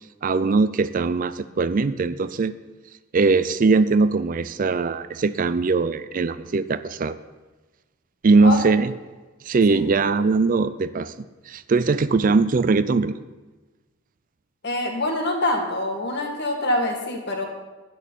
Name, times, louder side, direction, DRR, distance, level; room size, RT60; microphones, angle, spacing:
voice 1, 0.2-2.5 3.1-7.2 8.2-8.9 9.4-13.2, right 4 dB, 40° right, 14 dB, 0.4 m, -21 dB
voice 2, 14.6-17.5, left 1 dB, 50° left, 3 dB, 2.1 m, -25 dB
11.0 x 6.3 x 8.9 m, 1.2 s
head